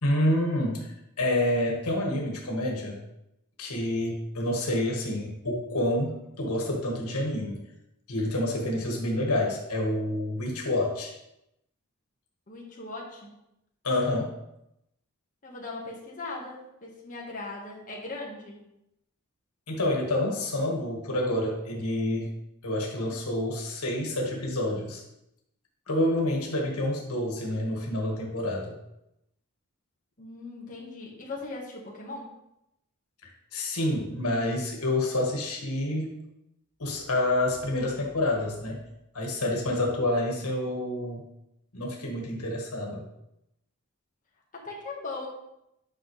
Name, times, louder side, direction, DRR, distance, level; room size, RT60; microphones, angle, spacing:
voice 1, 0.0-3.0 3.6-7.6 8.1-11.1 13.8-14.3 19.7-22.3 22.6-25.0 25.9-28.7 33.5-36.2 36.8-38.8 39.1-41.2 41.7-43.0, left 1 dB, 85° left, -1 dB, 1.7 m, -28 dB
voice 2, 12.5-13.3 15.4-18.6 30.2-32.3 44.5-45.3, left 3 dB, 35° left, -3 dB, 1.5 m, -39 dB
9.2 x 5.6 x 3.3 m, 0.84 s
head